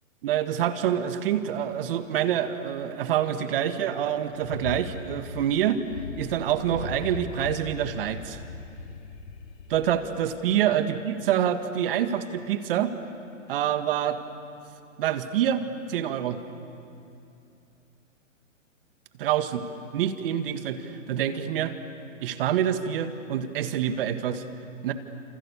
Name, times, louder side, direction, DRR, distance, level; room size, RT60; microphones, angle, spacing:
voice 1, 0.2-5.8 6.2-8.4 9.7-12.9 13.5-14.2 15.0-16.4 19.2-19.6 19.9-21.7 22.2-24.4 24.8-24.9, right 10 dB, 45° right, 9 dB, 1.9 m, -26 dB
sound 1, 4.3-10.6, left 4 dB, 75° left, 3.2 m, -39 dB
30.0 x 27.5 x 7.1 m, 2.7 s
hypercardioid pair, 135°, 39 cm